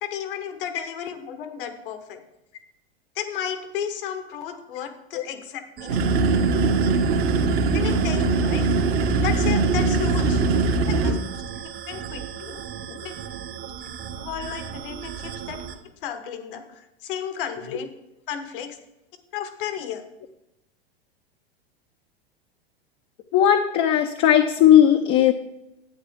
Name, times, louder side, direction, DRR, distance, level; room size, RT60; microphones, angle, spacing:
voice 1, 0.0-2.2 3.1-6.0 7.7-8.7 9.2-10.5 10.9-11.2 11.5-12.6 13.0-13.1 14.2-15.6 16.0-17.9 18.3-18.8 19.3-20.0, left 8 dB, 60° left, 9 dB, 1.3 m, -33 dB
sound 1, 5.8-15.7, right 9 dB, 30° right, 0.8 m, -37 dB
sound 2, 5.9-11.1, right 3 dB, 65° right, 1.5 m, -21 dB
voice 2, 23.3-25.3, left 10 dB, 45° left, 5 dB, 0.7 m, -17 dB
10.0 x 8.4 x 3.6 m, 0.90 s
hypercardioid pair, 100°, 30 cm